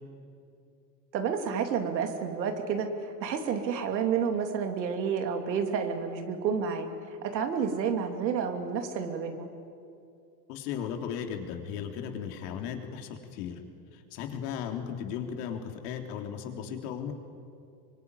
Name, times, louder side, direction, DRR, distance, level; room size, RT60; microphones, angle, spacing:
voice 1, 1.1-6.9 7.3-9.5, right 6 dB, 85° right, 5 dB, 2.9 m, -30 dB
voice 2, 10.5-13.6 14.1-17.1, left 8 dB, 65° left, 4 dB, 3.5 m, -36 dB
24.0 x 23.5 x 9.8 m, 2.5 s
hypercardioid pair, 95°, 50 cm